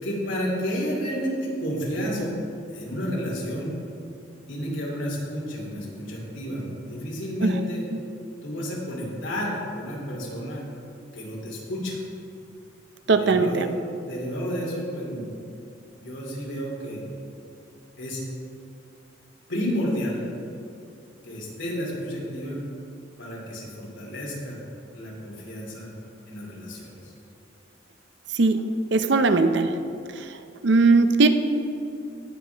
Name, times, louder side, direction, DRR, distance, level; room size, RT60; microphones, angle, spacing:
voice 1, 0.0-2.3 2.7-3.7 4.5-7.9 8.4-10.7 11.1-12.0 13.0-13.7 14.0-15.3 15.9-17.0 18.0-18.2 19.5-20.2 21.2-22.6 23.2-24.6 24.9-25.9 26.2-27.1, equal, 75° left, -4 dB, 2.8 m, -31 dB
voice 2, 13.1-13.6 28.4-28.6 28.9-29.7 30.6-31.3, right 3 dB, 60° right, 9 dB, 0.6 m, -19 dB
17.5 x 6.3 x 3.4 m, 2.6 s
head